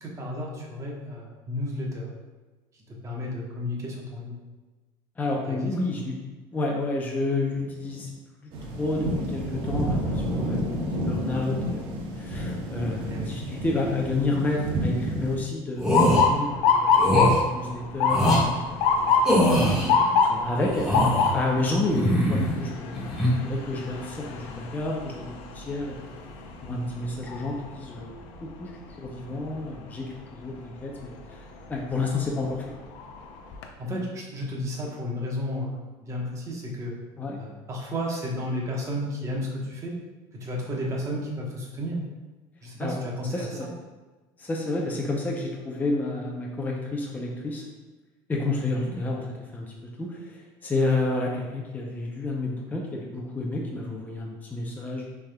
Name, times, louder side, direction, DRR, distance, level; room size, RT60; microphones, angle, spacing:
voice 1, 0.0-2.1 2.9-4.4 5.5-5.7 13.1-13.3 22.0-22.1 33.8-36.9 37.3-39.9 40.3-42.0 42.6-43.7 48.8-49.0, equal, 30° right, -2 dB, 1.1 m, -32 dB
voice 2, 5.2-6.1 6.5-8.1 8.4-8.5 8.8-10.6 10.9-11.8 12.1-17.0 17.4-19.3 19.6-21.0 21.3-23.1 23.4-26.2 26.6-28.1 28.4-28.7 29.0-32.7 37.2-37.4 42.8-42.9 43.3-43.7 44.4-47.6 48.3-49.2 49.5-55.1, left 2 dB, 15° left, -1 dB, 0.6 m, -30 dB
sound 1, 8.5-15.4, right 1 dB, 60° right, 0.9 m, -30 dB
sound 2, 15.8-16.2 17.0-17.4 18.1-18.4 19.2-19.9 20.6-21.3 21.9-22.6 22.9-23.3, equal, 5° right, 1.5 m, -22 dB
Motor vehicle (road) / Siren, 15.9-27.8 28.3-28.7 29.5-29.8 31.7-31.9 32.4-32.5 33.0-33.6, left 5 dB, 70° left, 0.6 m, -25 dB
6.0 x 3.6 x 2.3 m, 1.2 s
cardioid pair, 125°, 10 cm